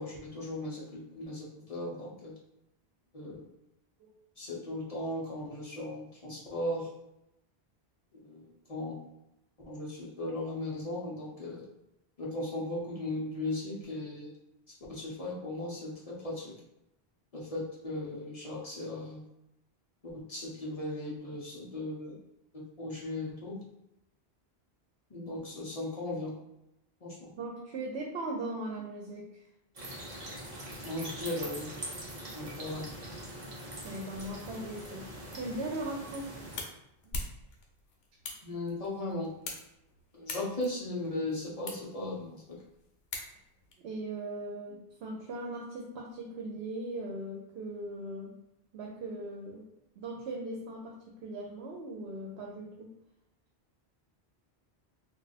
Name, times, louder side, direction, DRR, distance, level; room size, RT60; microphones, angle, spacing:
voice 1, 0.0-2.3 3.1-3.4 4.4-6.9 8.2-8.4 8.7-9.0 9.6-11.6 12.2-14.3 14.9-16.5 17.3-19.2 20.0-22.1 22.5-23.6 25.1-26.3 27.0-27.3 30.8-31.7 32.3-32.9 38.4-39.3 40.1-42.4, left 1 dB, 40° left, -4 dB, 0.6 m, -37 dB
voice 2, 27.4-29.4 33.8-36.3 37.0-37.2 43.8-48.4 48.7-49.7 50.0-52.9, right 2 dB, 85° right, -1 dB, 0.8 m, -39 dB
sound 1, 29.7-36.6, right 1 dB, 45° right, 0.9 m, -43 dB
sound 2, 35.9-43.7, left 2 dB, 80° left, 0.9 m, -44 dB
2.4 x 2.3 x 3.9 m, 0.84 s
omnidirectional pair, 1.1 m